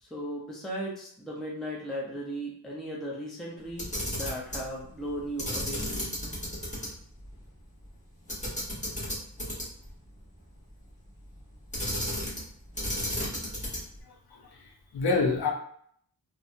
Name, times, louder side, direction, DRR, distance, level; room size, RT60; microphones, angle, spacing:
voice 1, 0.0-5.9, equal, ahead, -4 dB, 0.5 m, -36 dB
Camera, 3.7-4.7 5.4-6.9 7.2-7.3 8.3-9.9 11.7-12.5 12.7-14.0, equal, 20° left, 1.2 m, -33 dB
voice 2, 14.3-15.5, left 3 dB, 90° left, 2 dB, 0.7 m, -28 dB
2.7 x 2.2 x 2.5 m, 0.63 s
wide cardioid pair, 90°, 37 cm